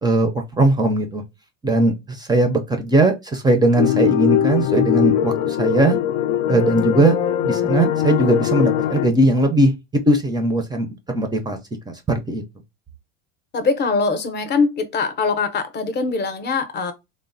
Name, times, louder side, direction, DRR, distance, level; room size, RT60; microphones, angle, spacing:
voice 1, 0.0-1.2 1.6-6.0 6.5-7.2 7.4-11.6 11.9-12.4, right 2 dB, 10° right, 0.4 m, -19 dB
sound 1, 3.7-9.1, left 11 dB, 80° left, 0.5 m, -21 dB
voice 2, 13.5-16.9, left 4 dB, 30° left, 0.7 m, -22 dB
3.0 x 2.1 x 2.5 m
supercardioid pair, 120°, 35 cm